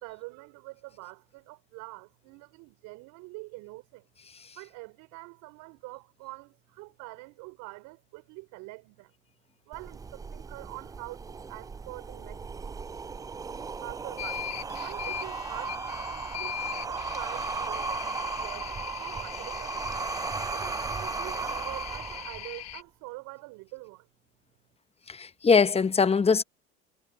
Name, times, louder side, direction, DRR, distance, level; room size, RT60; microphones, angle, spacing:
voice 1, 0.0-4.0 4.5-9.1 9.7-12.4 13.8-14.5 14.8-18.1 18.4-19.9 20.5-24.1, right 24 dB, 65° right, 3.8 m, -45 dB
sound 1, 9.7-22.7, right 5 dB, 10° right, 0.3 m, -36 dB
sound 2, 14.2-22.8, left 12 dB, 45° left, 1.5 m, -40 dB
voice 2, 25.1-26.4, left 5 dB, 15° left, 0.9 m, -22 dB
hypercardioid pair, 80°, 34 cm